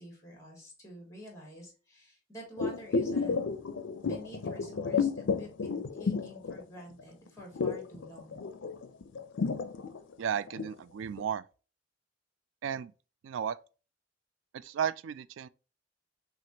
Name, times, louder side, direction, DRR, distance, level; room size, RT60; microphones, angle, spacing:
voice 1, 0.0-3.4 4.1-8.4, equal, 15° left, 2.1 m, -49 dB
sound 1, 2.6-7.0 7.3-10.8 11.2-11.3, left 5 dB, 80° left, 0.5 m, -32 dB
voice 2, 10.2-11.4 12.6-12.9 13.2-13.6 14.5-15.5, right 8 dB, 90° right, 0.3 m, -34 dB
5.9 x 2.5 x 2.8 m
head